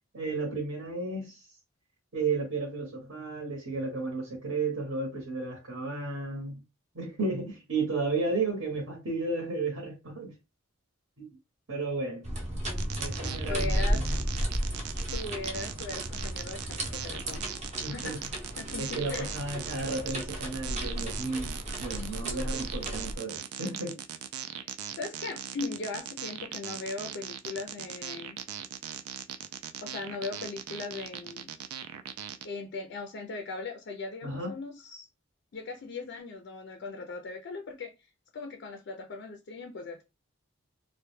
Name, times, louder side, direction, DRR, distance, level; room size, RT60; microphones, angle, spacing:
voice 1, 0.1-1.4 2.1-6.6 6.9-10.3 11.2-11.3 11.7-12.3 13.0-14.1 17.8-18.2 18.8-24.0 34.2-34.6, right 3 dB, 65° right, 0.8 m, -33 dB
sound 1, 12.2-23.2, equal, 30° right, 0.6 m, -34 dB
sound 2, 12.8-32.5, right 9 dB, 90° right, 0.3 m, -40 dB
voice 2, 13.4-14.1 15.1-18.3 18.6-19.3 24.6-24.7 25.0-28.4 29.8-31.5 32.4-35.1 35.5-40.0, left 3 dB, 50° left, 0.3 m, -39 dB
2.2 x 2.1 x 3.0 m
head